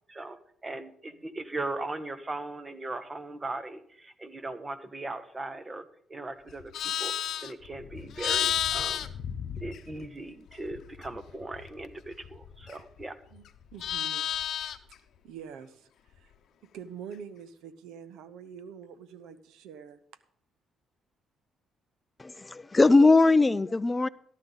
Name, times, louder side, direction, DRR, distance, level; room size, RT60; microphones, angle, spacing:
voice 1, 0.1-5.8 6.1-7.1 7.4-9.1 9.6-13.1, right 2 dB, 25° right, 1.4 m, -38 dB
Livestock farm animals working animals, 6.5-10.2 10.5-13.0 13.4-14.9, left 10 dB, 70° left, 0.8 m, -33 dB
voice 2, 13.3-14.3 15.2-16.3 16.6-20.0, right 7 dB, 90° right, 0.8 m, -45 dB
voice 3, 22.2-24.1, left 3 dB, 20° left, 0.4 m, -20 dB
14.5 x 11.5 x 4.0 m
cardioid pair, 90°, 0 cm